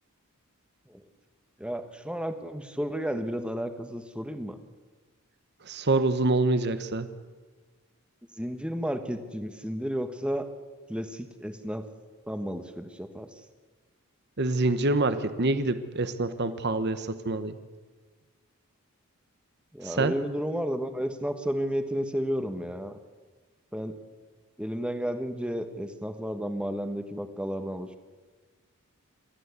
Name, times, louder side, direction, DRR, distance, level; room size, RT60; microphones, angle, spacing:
voice 1, 1.6-4.6 8.4-10.5 10.9-11.8 12.3-13.3 19.7-22.9 23.7-23.9 24.6-28.0, equal, 5° right, 8 dB, 1.3 m, -32 dB
voice 2, 5.7-7.1 14.4-17.5 19.8-20.1, right 2 dB, 50° right, 11 dB, 1.1 m, -26 dB
28.0 x 12.5 x 8.2 m, 1.4 s
head